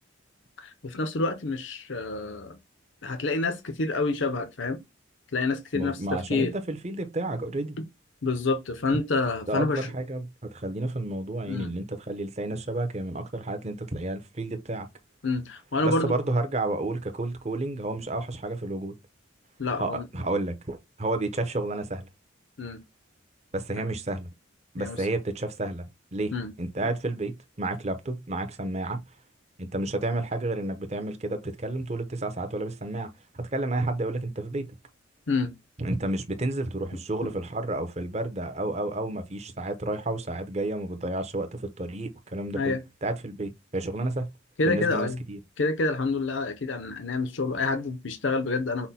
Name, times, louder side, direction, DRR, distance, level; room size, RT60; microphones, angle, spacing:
voice 1, 0.6-2.6 3.0-4.8 5.3-6.5 7.8-7.9 8.2-9.9 11.5-11.7 15.2-16.1 19.6-20.0 22.6-22.8 24.8-25.1 26.3-26.5 35.3-35.5 37.2-37.3 42.5-42.8 44.6-45.2 45.6-48.9, left 3 dB, 65° left, 0.7 m, -28 dB
voice 2, 5.7-7.7 9.5-14.9 15.8-18.9 19.8-22.1 23.5-24.3 24.7-25.8 26.1-26.3 26.6-29.0 29.6-33.1 33.3-34.7 35.8-42.7 43.0-44.3 44.6-45.4, right 2 dB, 35° right, 0.8 m, -31 dB
5.8 x 2.2 x 4.1 m
head